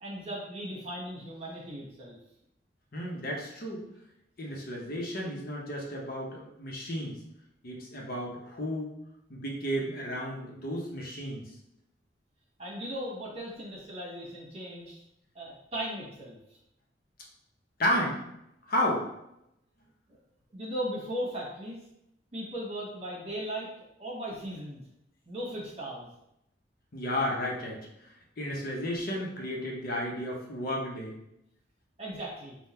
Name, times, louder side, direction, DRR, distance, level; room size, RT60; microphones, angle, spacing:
voice 1, 0.0-2.2 12.6-15.0 15.3-16.4 20.1-20.2 20.5-21.8 22.3-23.7 24.0-24.8 25.3-26.1 32.0-32.6, equal, 35° right, -4 dB, 1.3 m, -37 dB
voice 2, 2.9-3.8 4.4-7.2 7.6-8.9 9.3-11.5 17.8-18.2 18.7-19.1 26.9-27.9 28.4-31.2, equal, 55° left, -2 dB, 0.9 m, -32 dB
3.7 x 2.3 x 4.2 m, 0.81 s
head